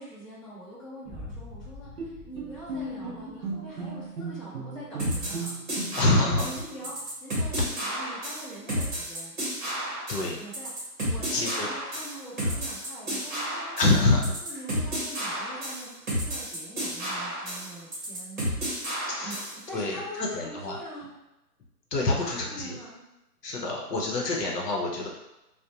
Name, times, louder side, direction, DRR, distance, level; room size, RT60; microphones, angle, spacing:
voice 1, 0.0-9.3 10.4-13.9 14.4-21.1 22.0-23.0, right 1 dB, 20° left, -12 dB, 0.8 m, -44 dB
Boom, 1.0-4.0, left 2 dB, ahead, 0.5 m, -45 dB
Bowed string instrument, 2.0-6.8, right 3 dB, 65° right, 0.5 m, -36 dB
sound 1, 5.0-19.6, equal, 30° right, 0.8 m, -32 dB
voice 2, 5.9-6.4 10.1-10.4 11.3-11.7 13.8-14.3 19.1-19.4 19.7-20.8 21.9-22.8 23.4-25.1, left 2 dB, 75° left, -2 dB, 0.8 m, -26 dB
2.4 x 2.1 x 2.8 m, 0.94 s
hypercardioid pair, 160°, 48 cm